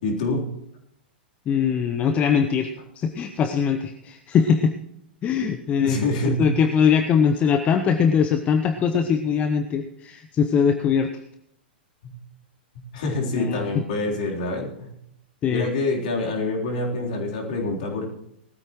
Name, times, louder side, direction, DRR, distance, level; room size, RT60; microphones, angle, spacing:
voice 1, 0.0-0.5 5.4-5.5 5.8-6.5 12.0-12.2 12.7-14.9 15.5-18.1, left 2 dB, 50° left, -1 dB, 3.6 m, -26 dB
voice 2, 1.5-2.7 3.0-4.8 5.2-6.0 6.2-11.1 13.3-13.8 15.4-15.6, left 7 dB, 25° left, 8 dB, 0.7 m, -21 dB
19.5 x 13.5 x 3.1 m, 0.77 s
figure-of-eight pair, 105°, 6 cm